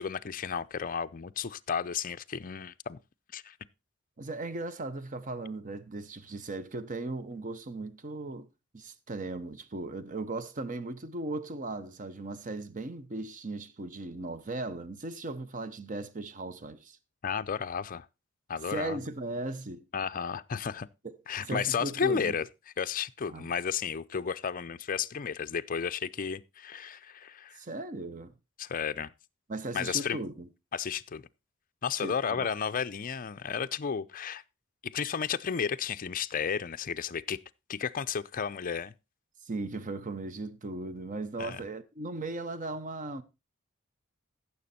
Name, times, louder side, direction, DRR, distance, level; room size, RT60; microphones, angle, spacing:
voice 1, 0.0-3.0 3.3-3.5 17.2-18.1 18.5-19.0 19.9-20.9 21.3-22.5 22.8-27.6 28.6-29.1 29.7-30.2 30.7-31.3 31.8-34.4 34.8-37.4 37.7-38.9 41.4-41.6, left 7 dB, 40° left, 0.5 m, -33 dB
voice 2, 4.2-8.5 8.7-17.0 18.6-19.8 21.0-21.1 21.4-22.4 23.3-23.5 27.5-28.3 29.5-30.5 32.0-32.5 39.4-43.2, right 2 dB, 40° right, 0.8 m, -37 dB
14.5 x 6.9 x 4.2 m
head